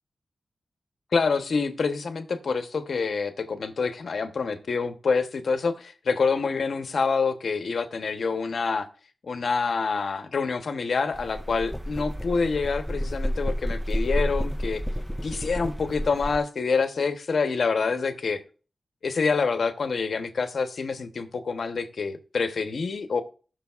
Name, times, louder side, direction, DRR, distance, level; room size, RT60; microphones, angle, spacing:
voice 1, 1.1-8.9 9.2-14.8 15.2-18.4 19.0-23.2, left 4 dB, 70° left, 8 dB, 0.9 m, -27 dB
sound 1, 11.1-16.4, equal, ahead, 0.3 m, -30 dB
18.5 x 6.3 x 2.4 m, 0.38 s
wide cardioid pair, 110°, 0 cm